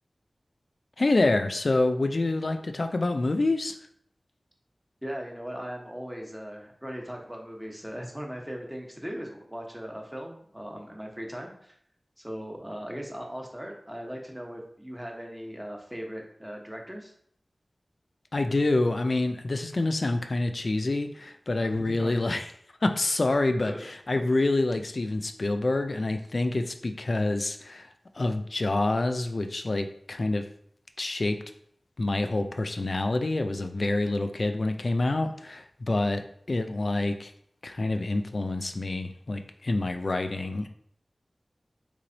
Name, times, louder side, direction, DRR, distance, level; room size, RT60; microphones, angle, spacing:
voice 1, 1.0-3.8 18.3-22.5 22.8-23.7 24.1-27.9 28.2-30.5 31.0-31.4 32.0-37.3 37.6-40.7, left 2 dB, 65° left, 7 dB, 0.4 m, -27 dB
voice 2, 5.0-11.7 12.2-17.1 21.6-22.2 23.2-23.3 23.7-23.8, equal, 10° right, 1 dB, 1.0 m, -39 dB
3.3 x 3.3 x 3.9 m, 0.65 s
wide cardioid pair, 40°, 0 cm